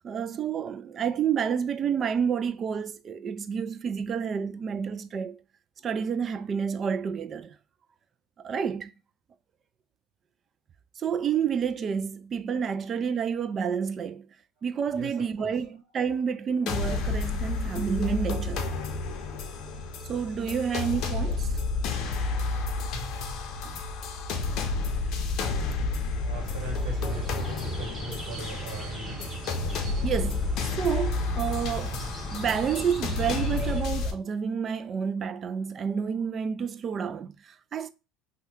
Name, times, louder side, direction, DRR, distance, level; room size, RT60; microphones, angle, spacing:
voice 1, 0.0-5.4 5.8-7.6 8.4-8.9 11.0-14.3 14.6-18.7 20.1-21.6 23.6-23.8 29.9-37.9, right 7 dB, 35° right, 0.3 m, -29 dB
voice 2, 14.9-15.5 26.2-29.3, right 1 dB, 65° right, 1.6 m, -40 dB
sound 1, 16.7-34.1, left 3 dB, 55° left, 0.6 m, -30 dB
sound 2, 26.3-33.8, right 2 dB, 15° right, 1.0 m, -39 dB
2.8 x 2.2 x 3.4 m
supercardioid pair, 95°, 0 cm